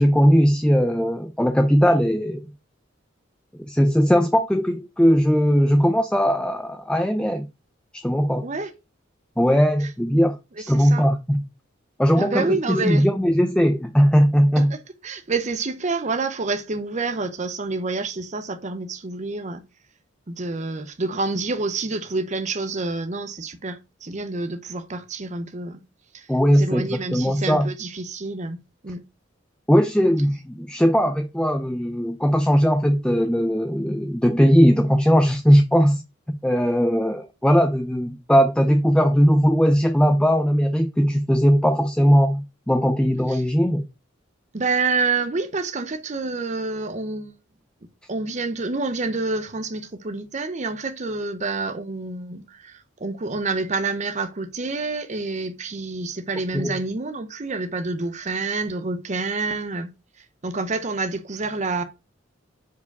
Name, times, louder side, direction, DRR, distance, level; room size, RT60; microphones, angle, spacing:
voice 1, 0.0-2.4 3.7-7.5 7.9-8.5 9.4-10.4 10.7-11.4 12.0-14.7 26.3-27.7 29.7-36.0 36.4-43.8 56.5-56.7, equal, 5° left, 0.4 m, -19 dB
voice 2, 10.6-11.1 12.2-13.1 14.6-19.6 20.3-25.8 26.1-26.3 26.6-28.6 28.8-29.0 43.3-43.4 44.5-47.3 48.1-59.9 60.2-61.8, right 3 dB, 35° right, 0.6 m, -28 dB
4.7 x 4.7 x 5.3 m
head